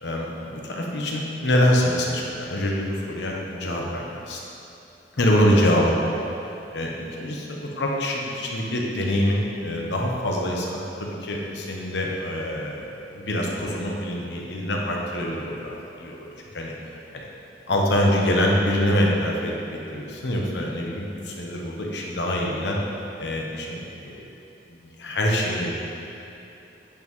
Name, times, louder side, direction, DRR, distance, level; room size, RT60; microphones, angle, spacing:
voice 1, 0.0-4.4 5.2-6.1 6.5-16.3 16.5-16.7 17.1-17.3 17.7-22.8 23.2-24.3 24.7-25.7, equal, 85° left, -1 dB, 1.0 m, -25 dB
8.7 x 5.5 x 3.1 m, 2.9 s
head